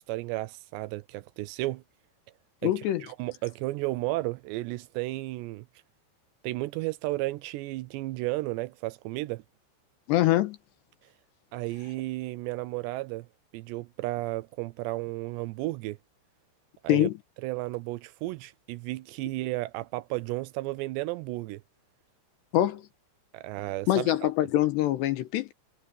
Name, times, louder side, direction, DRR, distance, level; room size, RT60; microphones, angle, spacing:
voice 1, 0.0-1.8 2.6-2.7 3.0-5.7 6.4-9.4 11.5-13.3 13.5-16.0 16.8-17.1 17.4-21.6 23.3-24.1, right 19 dB, 80° right, 2.7 m, -33 dB
voice 2, 2.6-3.0 10.1-10.6 16.9-17.2 22.5-22.9 23.9-25.5, left 14 dB, 75° left, 3.1 m, -24 dB
omnidirectional pair, 5.2 m